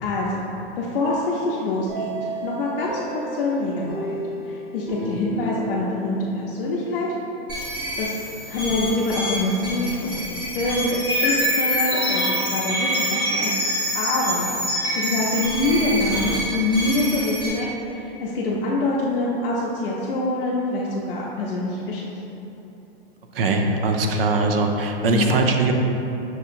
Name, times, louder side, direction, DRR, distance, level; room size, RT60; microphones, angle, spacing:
voice 1, 0.0-0.4 0.8-3.0 3.3-4.2 4.4-7.1 7.6-14.6 15.0-22.1 25.0-25.3, left 2 dB, 60° left, -5 dB, 0.6 m, -25 dB
sound 1, 1.9-6.6, right 2 dB, 40° right, 1.2 m, -33 dB
sound 2, 7.5-17.5, equal, 5° right, 0.5 m, -26 dB
voice 2, 23.3-25.7, right 3 dB, 65° right, 4 dB, 0.5 m, -21 dB
5.9 x 2.8 x 2.5 m, 3.0 s
supercardioid pair, 175°, 31 cm